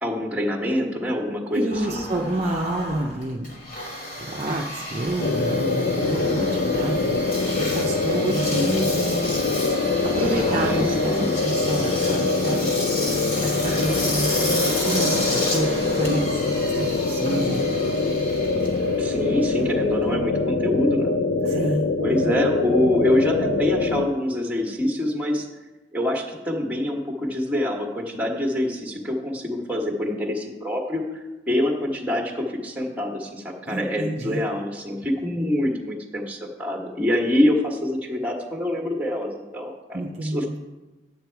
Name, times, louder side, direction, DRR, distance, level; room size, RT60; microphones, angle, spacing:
voice 1, 0.0-2.1 10.2-11.3 19.0-21.1 22.0-25.5 25.9-40.6, left 1 dB, 10° right, 1 dB, 1.5 m, -25 dB
voice 2, 1.5-3.5 4.2-7.2 7.6-9.3 10.2-12.7 13.0-13.1 13.4-17.7 21.4-22.3 33.7-34.4 39.9-40.5, right 1 dB, 40° right, 0 dB, 0.7 m, -28 dB
Engine, 1.7-20.1, left 1 dB, 50° left, 3.1 m, -31 dB
sound 1, 5.2-24.1, left 3 dB, 75° left, 0.5 m, -24 dB
11.0 x 8.6 x 4.6 m, 1.1 s
head